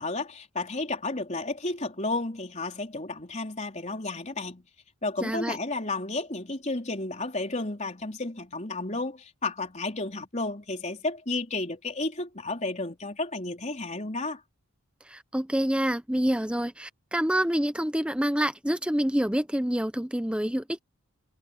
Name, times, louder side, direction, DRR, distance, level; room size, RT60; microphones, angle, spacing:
voice 1, 0.0-4.6 5.0-14.4, left 2 dB, 35° left, 4.2 m, -32 dB
voice 2, 5.2-5.6 15.1-20.8, equal, 5° right, 0.7 m, -27 dB
head